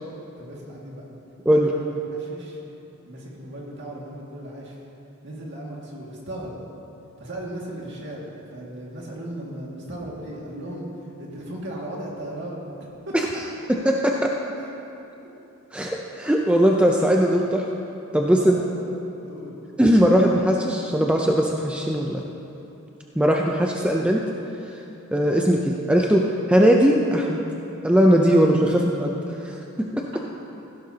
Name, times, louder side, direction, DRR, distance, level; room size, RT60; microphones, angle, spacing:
voice 1, 0.4-1.0 1.5-2.6 3.1-4.8 5.2-6.5 7.2-10.9 11.2-12.6 13.1-13.2 15.2-15.3 18.4-18.9 19.2-19.5 28.6-28.7, right 1 dB, 55° right, -3 dB, 2.1 m, -36 dB
voice 2, 13.7-14.3 15.7-17.6 18.1-18.6 19.8-22.2 23.2-24.2 25.1-27.4 27.8-29.1 29.4-30.1, equal, 5° right, 0 dB, 0.5 m, -19 dB
16.0 x 11.5 x 2.8 m, 2.9 s
head